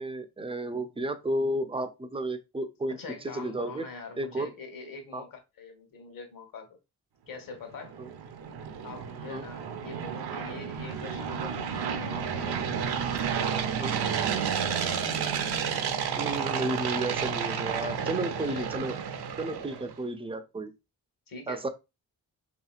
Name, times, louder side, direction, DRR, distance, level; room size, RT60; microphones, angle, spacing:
voice 1, 0.0-3.0 3.3-3.8 4.2-4.5 5.1-5.2 8.0-8.1 9.3-9.4 13.8-14.0 16.2-19.0 19.4-20.7 21.5-21.7, right 1 dB, 15° right, 0.4 m, -32 dB
voice 2, 2.9-6.8 7.3-8.0 8.8-12.6 13.0-15.0 17.4-18.9 21.3-21.7, left 4 dB, 50° left, 1.1 m, -44 dB
sound 1, 7.7-20.0, right 7 dB, 60° right, 0.6 m, -31 dB
2.8 x 2.7 x 2.3 m
supercardioid pair, 40°, 45 cm